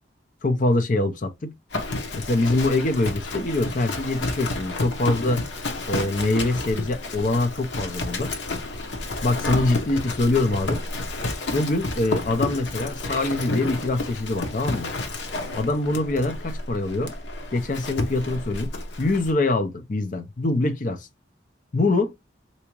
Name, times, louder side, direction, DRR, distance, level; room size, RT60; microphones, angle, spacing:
voice 1, 0.4-1.5 2.1-5.4 5.9-8.3 9.2-10.8 11.5-14.9 15.6-17.1 17.5-18.7 19.0-21.1 21.7-22.1, left 2 dB, 45° left, 0.6 m, -24 dB
Livestock farm animals working animals, 1.7-19.3, left 2 dB, 85° left, 0.9 m, -31 dB
3.5 x 2.8 x 2.9 m
head